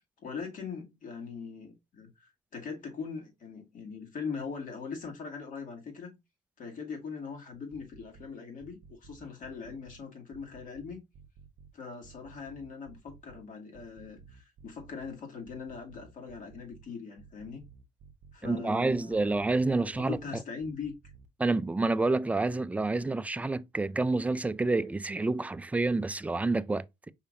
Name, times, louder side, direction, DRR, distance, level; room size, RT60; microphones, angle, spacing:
voice 1, 0.0-6.2 6.6-11.0 11.7-17.6 18.3-19.5 19.8-20.9, left 5 dB, 50° left, 2.1 m, -41 dB
sound 1, 7.5-8.3 8.6-10.0 10.3-11.7 12.0-13.4 13.7-15.1 15.5-16.8 17.2-18.6 18.9-20.3 20.6-21.3, right 6 dB, 50° right, 0.7 m, -54 dB
voice 2, 18.4-20.2 21.4-27.1, right 3 dB, 10° right, 0.3 m, -28 dB
5.5 x 3.4 x 2.6 m
cardioid pair, 110°, 17 cm